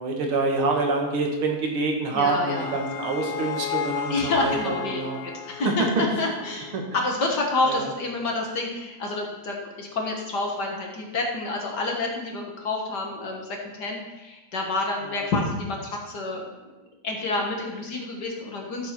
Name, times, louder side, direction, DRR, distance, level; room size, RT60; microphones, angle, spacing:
voice 1, 0.0-5.2 5.6-6.0 6.7-6.8 7.7-7.9, right 3 dB, 50° right, 1 dB, 2.2 m, -26 dB
sound 1, 2.1-7.3, left 10 dB, 85° left, 2.0 m, -34 dB
voice 2, 2.1-2.7 4.1-5.0 5.5-16.5 17.0-18.9, left 2 dB, 50° left, 0 dB, 1.4 m, -28 dB
14.0 x 6.9 x 4.3 m, 1.1 s
omnidirectional pair, 3.4 m